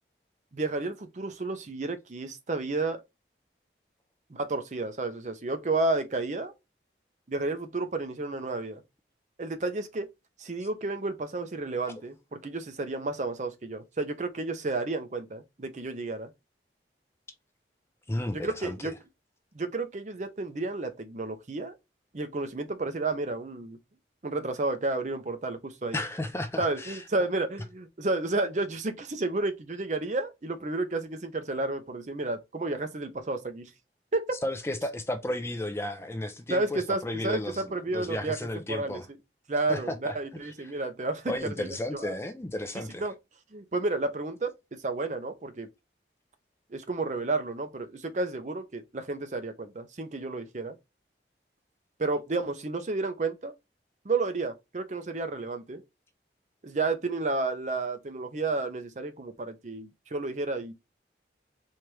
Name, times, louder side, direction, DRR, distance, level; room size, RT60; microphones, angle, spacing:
voice 1, 0.5-3.0 4.3-6.5 7.3-8.8 9.4-10.1 10.4-16.3 18.3-18.9 19.5-21.8 22.1-23.8 24.2-26.0 26.6-33.7 34.1-34.2 36.5-38.4 38.7-39.0 39.5-41.3 41.6-41.7 41.9-42.2 43.0-43.1 43.5-44.5 44.8-45.7 46.7-50.8 52.0-53.5 54.0-55.8 56.6-60.7, right 3 dB, 40° right, 0.6 m, -31 dB
voice 2, 18.1-18.9 25.9-27.0 34.4-39.1 39.7-40.2 40.6-40.8 41.3-43.1, left 1 dB, 15° left, 0.4 m, -33 dB
4.4 x 2.5 x 3.2 m
head